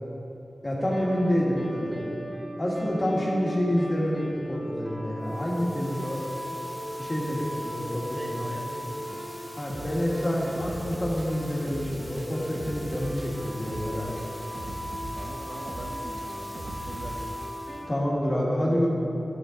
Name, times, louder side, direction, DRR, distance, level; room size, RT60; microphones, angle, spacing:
voice 1, 0.6-2.0 2.6-6.2 7.0-8.4 9.6-14.1 17.9-18.9, equal, 30° left, -4 dB, 1.9 m, -27 dB
sound 1, 0.8-17.8, equal, 25° right, 1.7 m, -38 dB
sound 2, 5.2-17.9, equal, 10° left, 1.6 m, -47 dB
voice 2, 8.1-9.3 15.1-17.5, right 1 dB, 50° right, 0 dB, 0.9 m, -41 dB
sound 3, 9.7-17.4, right 2 dB, 80° right, 1.0 m, -39 dB
9.7 x 8.2 x 3.9 m, 3.0 s
wide cardioid pair, 90°, 0 cm